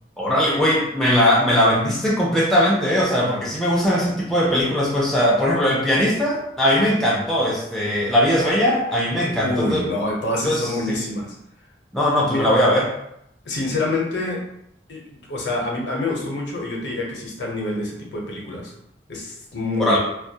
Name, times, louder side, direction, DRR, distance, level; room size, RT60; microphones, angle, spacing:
voice 1, 0.2-9.8 10.4-11.0 11.9-12.9 19.8-20.0, equal, ahead, -4 dB, 0.4 m, -20 dB
voice 2, 9.4-11.3 12.3-12.5 13.4-14.4 14.9-18.7 19.1-20.0, left 2 dB, 75° left, -1 dB, 0.6 m, -26 dB
2.2 x 2.1 x 2.7 m, 0.77 s
head